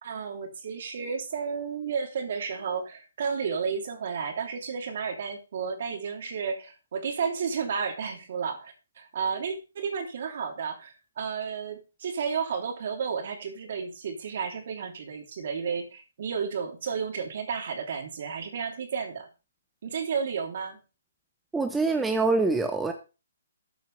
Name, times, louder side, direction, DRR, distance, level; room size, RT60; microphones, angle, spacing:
voice 1, 0.0-19.3 19.8-20.8, right 6 dB, 55° right, 4 dB, 3.2 m, -32 dB
voice 2, 21.5-22.9, right 3 dB, 5° right, 6 dB, 0.8 m, -25 dB
13.0 x 8.8 x 3.4 m, 0.30 s
hypercardioid pair, 160°, 0 cm